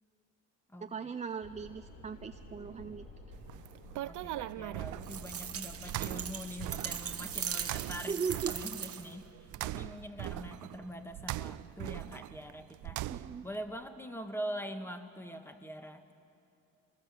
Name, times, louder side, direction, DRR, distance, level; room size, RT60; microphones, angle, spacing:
voice 1, 0.8-3.1 8.1-8.6 13.1-13.5, right 6 dB, 25° right, 8 dB, 0.5 m, -38 dB
sound 1, 1.4-7.4, left 1 dB, 80° left, 2.9 m, -51 dB
sound 2, 3.4-13.6, right 15 dB, 80° right, 0.5 m, -41 dB
voice 2, 4.0-8.2 8.5-16.1, equal, 10° left, 7 dB, 1.5 m, -43 dB
sound 3, 5.0-9.2, right 9 dB, 50° right, 1.0 m, -40 dB
26.0 x 20.0 x 7.4 m, 2.6 s
cardioid pair, 90°, 30 cm